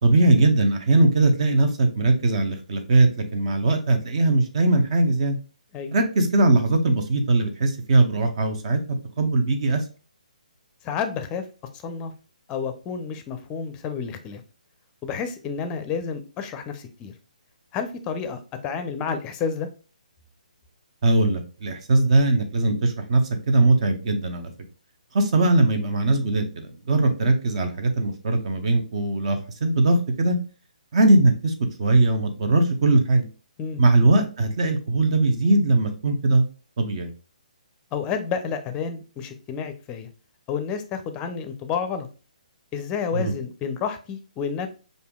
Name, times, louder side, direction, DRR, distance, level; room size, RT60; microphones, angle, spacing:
voice 1, 0.0-5.4 5.9-9.8 21.0-23.2 23.5-24.5 25.1-30.4 30.9-31.5 31.8-33.3 33.8-36.5 36.8-37.1 43.1-43.3, right 2 dB, 45° right, 6 dB, 0.9 m, -20 dB
voice 2, 10.8-11.4 11.8-12.1 12.5-14.4 15.0-17.1 17.7-19.7 33.6-33.8 37.9-40.1 40.5-42.1 42.7-44.7, left 6 dB, 20° left, 8 dB, 0.5 m, -30 dB
6.6 x 2.6 x 2.3 m, 0.34 s
figure-of-eight pair, 140°, 4 cm